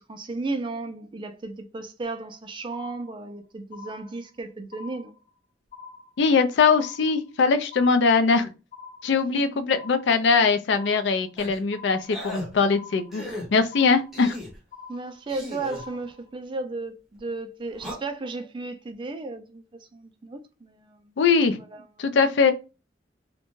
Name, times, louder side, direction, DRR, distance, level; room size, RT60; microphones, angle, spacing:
voice 1, 0.0-5.2 9.3-9.4 14.9-21.1 21.7-22.1, right 3 dB, 25° right, 0.3 m, -34 dB
sound 1, 2.1-2.4 2.7-3.4 3.7-4.4 4.7-5.4 5.7-6.4 6.7-7.4 7.7-8.4 8.7-9.4 9.7-10.4 10.7-11.4 11.7-12.4 12.7-13.4 13.7-14.4 14.7-15.4 15.7-16.4, left 5 dB, 40° left, 0.7 m, -46 dB
voice 2, 6.2-8.5 9.0-13.2 13.5-14.4 21.2-21.6 22.0-22.5, left 5 dB, 70° left, 0.4 m, -21 dB
sound 2, 11.4-11.6 12.1-12.5 13.1-13.5 14.1-14.6 15.3-15.8 17.7-17.9, left 1 dB, ahead, 0.8 m, -36 dB
2.5 x 2.1 x 3.0 m
head